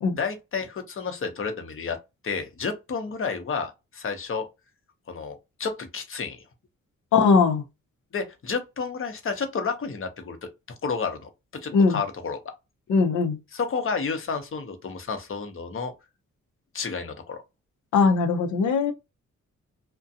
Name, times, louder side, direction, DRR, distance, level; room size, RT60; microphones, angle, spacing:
voice 1, 0.1-2.0 2.2-4.5 5.1-6.4 8.1-10.5 10.8-12.5 13.5-15.9 16.7-17.4, left 5 dB, 45° left, 0.8 m, -31 dB
voice 2, 7.1-7.6 11.7-12.0 12.9-13.4 17.9-18.9, left 5 dB, 80° left, 0.7 m, -20 dB
2.4 x 2.2 x 2.7 m
cardioid pair, 70°, 29 cm